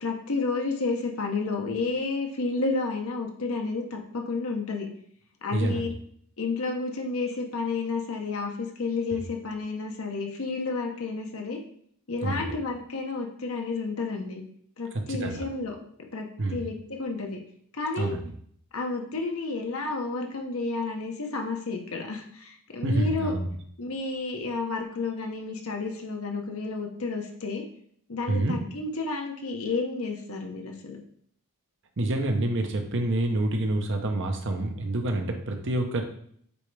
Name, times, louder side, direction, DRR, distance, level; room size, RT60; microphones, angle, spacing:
voice 1, 0.0-4.9 5.4-5.9 6.4-11.6 12.1-14.4 14.8-15.7 16.1-17.4 17.7-18.1 18.7-23.3 23.8-27.6 28.1-31.0, left 3 dB, 70° left, 2 dB, 1.0 m, -31 dB
voice 2, 5.5-5.9 9.1-9.2 12.2-12.5 14.9-15.4 16.4-16.6 18.0-18.3 22.8-23.5 28.3-28.6 32.0-36.0, right 1 dB, 55° right, 4 dB, 0.8 m, -27 dB
8.1 x 3.5 x 3.3 m, 0.64 s
head